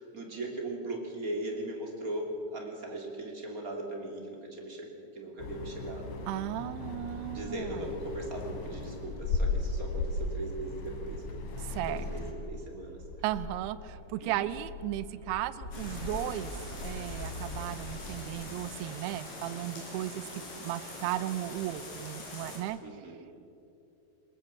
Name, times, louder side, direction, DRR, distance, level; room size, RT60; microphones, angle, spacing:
voice 1, 0.0-6.2 7.3-11.2 11.9-13.0 14.2-14.5 22.8-23.3, right 1 dB, 25° right, 0 dB, 2.3 m, -39 dB
sound 1, 5.4-12.3, left 3 dB, 75° left, 4.6 m, -36 dB
voice 2, 6.3-7.9 11.6-12.1 13.2-16.5 16.8-20.3 20.5-22.8, right 13 dB, 80° right, 14 dB, 2.4 m, -35 dB
sound 2, 7.2-18.5, left 2 dB, 30° left, 1.6 m, -44 dB
sound 3, 15.7-22.6, left 1 dB, 50° left, 6.0 m, -43 dB
20.5 x 20.5 x 7.2 m, 2.7 s
omnidirectional pair, 5.2 m